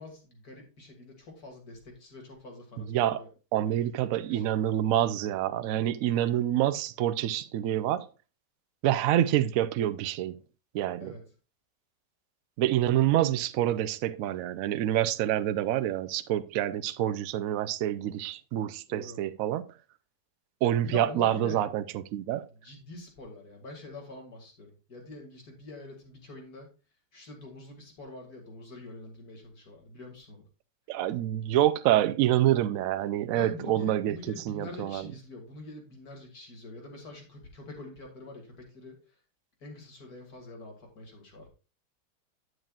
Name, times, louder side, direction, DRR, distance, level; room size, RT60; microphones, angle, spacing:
voice 1, 0.0-3.3 3.6-3.8 4.3-4.5 11.0-11.2 18.9-19.2 20.8-21.7 22.6-26.7 27.1-30.4 33.4-39.0 39.6-41.5, left 3 dB, 55° left, 2.6 m, -45 dB
voice 2, 2.9-3.2 3.5-8.1 8.8-10.4 10.7-11.2 12.6-19.6 20.6-22.5 30.9-34.2 34.5-35.0, right 12 dB, 75° right, 0.8 m, -27 dB
8.9 x 8.0 x 2.4 m
omnidirectional pair, 1.9 m